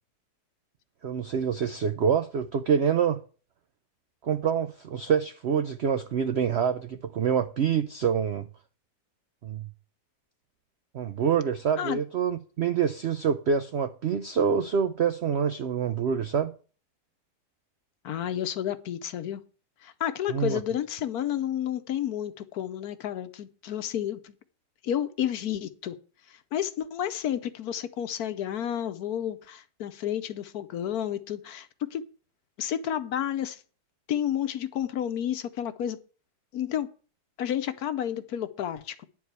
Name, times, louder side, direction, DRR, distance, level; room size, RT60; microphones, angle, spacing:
voice 1, 1.0-3.2 4.2-8.5 9.4-9.7 10.9-16.5 20.3-20.6, right 7 dB, 75° right, 0.6 m, -26 dB
voice 2, 18.0-19.4 19.8-24.3 24.8-25.9 26.3-32.0 32.6-33.6 34.1-36.0 36.5-36.9 37.4-39.1, left 10 dB, 70° left, 1.2 m, -31 dB
10.5 x 4.7 x 8.0 m
omnidirectional pair, 1.8 m